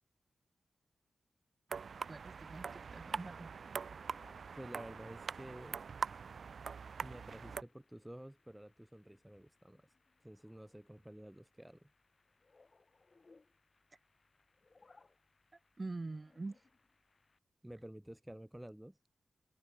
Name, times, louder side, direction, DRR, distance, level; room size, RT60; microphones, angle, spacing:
sound 1, 1.7-17.4, left 3 dB, 45° left, 7.2 m, -70 dB
sound 2, 1.7-7.6, right 6 dB, 70° right, 0.6 m, -43 dB
voice 1, 2.1-3.5 15.8-16.6, right 3 dB, 35° right, 1.1 m, -44 dB
voice 2, 4.6-5.8 7.0-9.9 10.2-11.9 17.6-19.0, right 1 dB, 10° right, 0.5 m, -51 dB
open air
cardioid pair, 60°, 0 cm